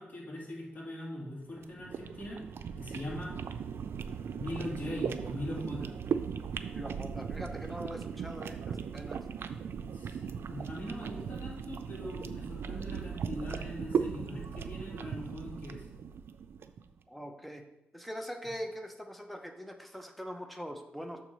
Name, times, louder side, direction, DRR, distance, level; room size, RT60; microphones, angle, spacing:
voice 1, 0.0-2.4 2.8-3.4 4.3-5.9 9.9-15.8, left 1 dB, 45° left, -4 dB, 2.7 m, -41 dB
sound 1, 1.6-16.8, right 7 dB, 80° right, 0.4 m, -38 dB
voice 2, 6.7-9.2 17.1-17.6 17.9-21.2, equal, ahead, 5 dB, 0.8 m, -42 dB
6.6 x 4.7 x 5.5 m, 0.91 s
cardioid pair, 85°, 4 cm